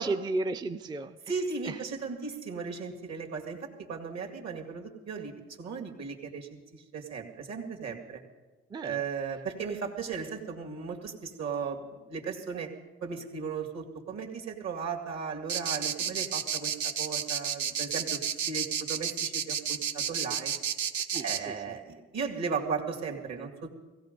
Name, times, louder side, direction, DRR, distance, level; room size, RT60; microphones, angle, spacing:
voice 1, 0.0-1.2 1.6-1.8 8.7-9.0 21.1-21.6, right 3 dB, 15° right, 9 dB, 0.4 m, -33 dB
voice 2, 1.3-5.3 5.6-8.2 8.8-12.7 13.0-20.6 21.1-23.7, right 5 dB, 60° right, 2 dB, 2.3 m, -36 dB
sound 1, 15.5-21.4, right 8 dB, 75° right, 1.0 m, -31 dB
16.5 x 16.0 x 5.3 m, 1.3 s
cardioid pair, 90°, 30 cm